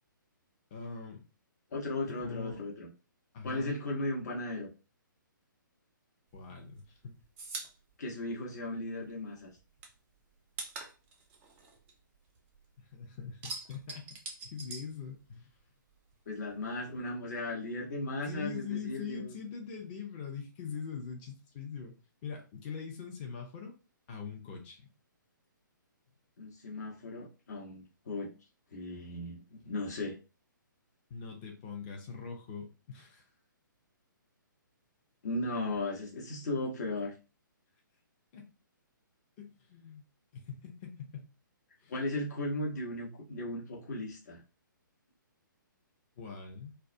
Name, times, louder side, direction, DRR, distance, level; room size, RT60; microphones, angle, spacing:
voice 1, 0.7-1.2 2.2-2.6 3.3-3.8 6.3-7.1 12.8-14.1 14.4-15.5 18.2-23.8 24.1-24.9 31.1-33.2 38.3-38.5 39.4-40.0 40.3-41.3 41.8-41.9 46.2-46.7, left 6 dB, 30° left, 1 dB, 0.6 m, -42 dB
voice 2, 1.7-2.9 3.4-4.7 8.0-9.5 16.3-19.3 26.4-28.3 28.7-30.2 35.2-37.1 41.9-44.4, left 2 dB, 55° left, -1 dB, 0.9 m, -36 dB
sound 1, 6.3-9.1 9.4-12.7 13.0-15.6 15.9-17.0, right 3 dB, 15° right, 0.4 m, -45 dB
2.2 x 2.1 x 2.6 m, 0.31 s
figure-of-eight pair, 130°, 11 cm